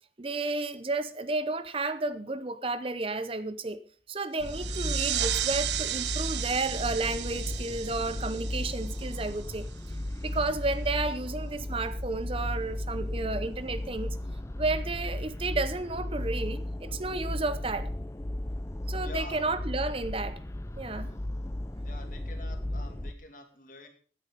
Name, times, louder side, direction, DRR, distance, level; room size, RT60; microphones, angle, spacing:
voice 1, 0.2-3.8 4.1-9.7 10.2-14.2 14.6-17.9 18.9-20.4 20.8-21.1, right 3 dB, 30° right, 0.7 m, -32 dB
sound 1, 4.4-23.1, left 1 dB, 15° left, 0.5 m, -35 dB
sound 2, 4.4-9.7, right 12 dB, 80° right, 0.8 m, -34 dB
voice 2, 19.0-19.5 21.8-23.9, left 2 dB, 50° left, 2.6 m, -46 dB
16.0 x 9.7 x 5.3 m
head